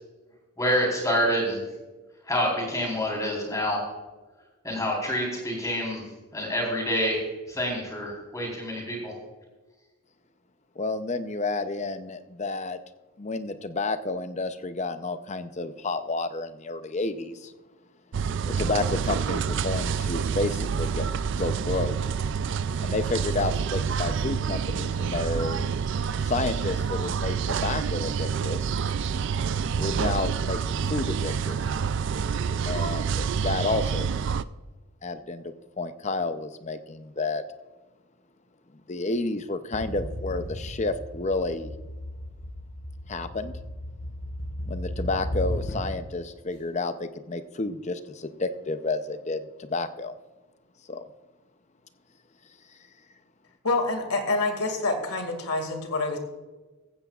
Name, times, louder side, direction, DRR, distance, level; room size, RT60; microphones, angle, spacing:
voice 1, 0.6-1.6 2.3-3.8 4.6-6.0 6.3-7.2 7.5-9.1, equal, 15° left, -2 dB, 4.0 m, -27 dB
voice 2, 10.8-12.8 13.2-17.5 18.5-21.1 21.4-22.0 22.8-25.7 26.2-28.6 29.8-32.0 32.7-34.1 35.0-37.4 38.9-41.7 43.1-43.5 44.7-50.2 50.9-51.1, left 3 dB, 30° left, 10 dB, 0.6 m, -30 dB
sound 1, 18.1-34.4, right 6 dB, 55° right, 0.3 m, -28 dB
sound 2, 39.7-46.1, equal, 50° left, 4.3 m, -35 dB
voice 3, 53.6-56.2, left 2 dB, 85° left, 5 dB, 2.3 m, -27 dB
15.0 x 15.0 x 2.4 m, 1.2 s
head